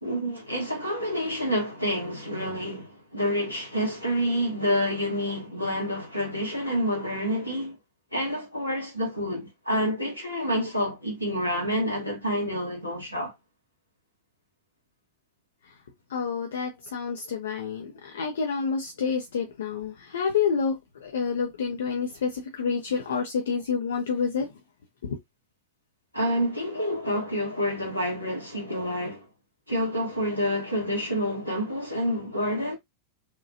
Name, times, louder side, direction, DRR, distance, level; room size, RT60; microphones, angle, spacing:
voice 1, 0.0-7.8 8.1-13.3 26.1-29.3 29.7-32.7, equal, 90° left, 1.3 m, -28 dB
voice 2, 16.1-24.5 25.0-25.2, left 6 dB, 65° left, 0.5 m, -28 dB
2.8 x 2.3 x 2.6 m
figure-of-eight pair, 90°, 0 cm